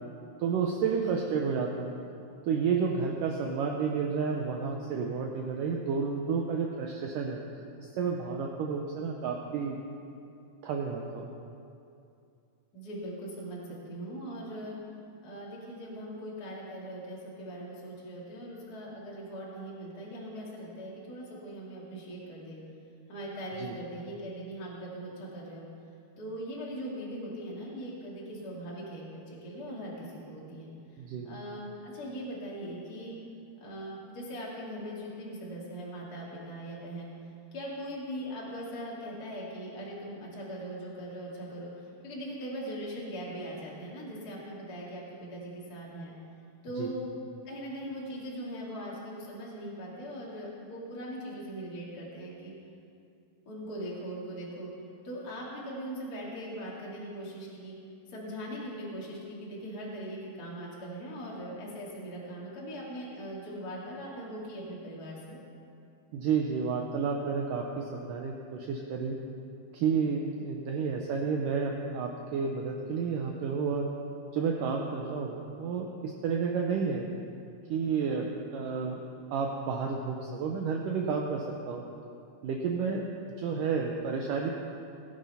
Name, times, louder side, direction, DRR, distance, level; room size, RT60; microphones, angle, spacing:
voice 1, 0.4-1.9 2.4-7.4 7.8-9.8 10.6-11.3 23.6-23.7 31.0-31.3 46.8-46.9 66.1-69.2 69.7-73.9 74.3-77.1 77.7-78.3 78.5-79.0 79.3-81.8 82.4-83.0 83.4-84.5, right 5 dB, 75° right, 1 dB, 2.1 m, -31 dB
voice 2, 12.7-14.8 15.2-22.6 23.1-25.7 26.2-30.7 31.2-33.1 33.6-37.1 37.5-41.7 42.0-46.1 46.6-47.1 47.5-52.5 53.5-54.7 55.0-57.8 58.1-65.4 83.4-83.6, equal, 25° left, -5 dB, 2.6 m, -40 dB
18.5 x 9.8 x 5.6 m, 2.6 s
omnidirectional pair, 4.6 m